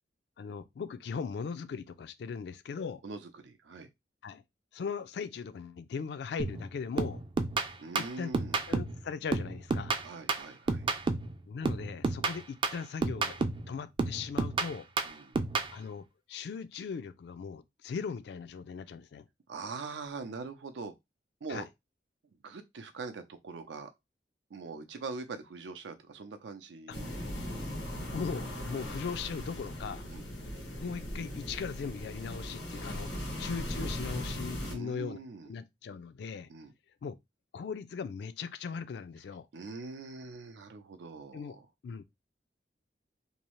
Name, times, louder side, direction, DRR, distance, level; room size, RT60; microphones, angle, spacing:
voice 1, 0.4-3.0 4.2-4.4 4.7-7.2 8.0-8.3 8.7-10.0 11.5-14.9 15.7-19.2 21.5-21.7 28.1-30.0 30.8-33.1 33.4-35.2 35.5-36.5 37.0-37.2 37.5-39.5 41.3-41.6 41.8-42.0, left 5 dB, 65° left, 0.3 m, -39 dB
voice 2, 3.0-3.9 7.8-8.6 10.0-10.9 15.0-15.4 19.5-20.9 21.4-21.7 22.4-23.9 24.5-27.1 30.1-30.3 34.6-35.6 36.5-36.7 39.5-41.7, right 4 dB, 90° right, 0.5 m, -43 dB
sound 1, 6.4-6.7 7.0-9.0 9.3-11.3 11.6-13.7 14.0-15.7, right 3 dB, 30° right, 0.3 m, -31 dB
sound 2, 26.9-34.7, left 1 dB, 90° left, 1.3 m, -38 dB
2.6 x 2.0 x 2.9 m
head